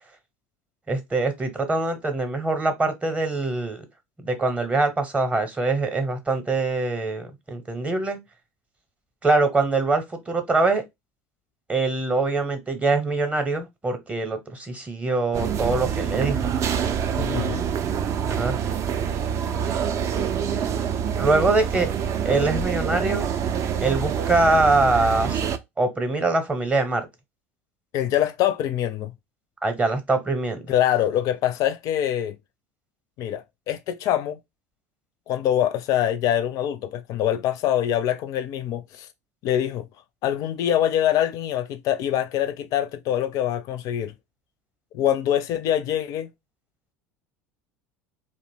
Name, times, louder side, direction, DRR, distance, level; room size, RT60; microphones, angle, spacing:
voice 1, 0.9-3.8 4.2-8.2 9.2-10.8 11.7-16.5 18.3-18.6 21.2-21.9 22.2-23.3 23.8-25.4 25.8-27.1 29.6-30.7, right 3 dB, 15° right, 0.7 m, -23 dB
sound 1, 15.3-25.6, right 8 dB, 35° right, 0.4 m, -26 dB
voice 2, 17.2-17.6 27.9-29.1 30.7-32.4 33.2-34.4 35.3-39.1 39.4-39.9 40.2-44.1 44.9-46.3, left 11 dB, 45° left, 0.4 m, -24 dB
2.5 x 2.0 x 3.3 m
figure-of-eight pair, 70°, 8 cm